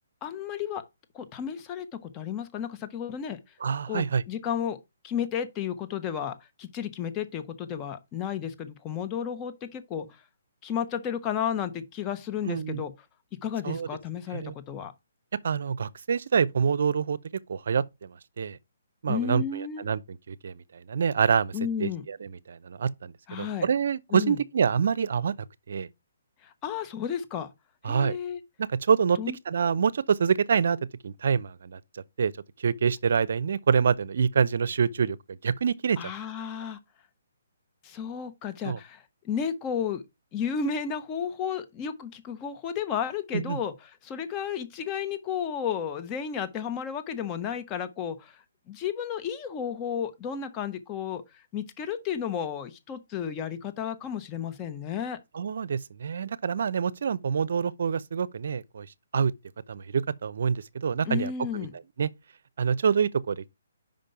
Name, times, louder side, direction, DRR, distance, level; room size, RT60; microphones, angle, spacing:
voice 1, 0.2-0.8 1.1-3.4 3.9-4.8 5.0-10.1 10.6-12.9 13.4-14.9 19.1-19.9 21.5-22.0 23.3-23.7 24.1-24.4 26.4-27.5 27.8-28.4 29.2-29.4 36.0-36.8 37.8-40.0 40.3-43.7 44.0-55.2 61.0-61.7, left 8 dB, 25° left, 1.0 m, -33 dB
voice 2, 3.6-4.2 12.4-12.8 13.6-13.9 14.3-14.6 15.4-17.2 17.5-18.6 19.0-21.5 21.8-25.3 25.7-25.9 27.8-28.2 28.6-29.2 29.5-30.8 31.0-32.3 32.6-36.0 38.6-38.8 43.3-43.6 55.3-58.9 59.1-59.3 59.7-61.3 62.0-62.1 62.6-63.5, right 6 dB, 65° right, 0.5 m, -26 dB
5.3 x 5.2 x 5.6 m
hypercardioid pair, 145°, 0 cm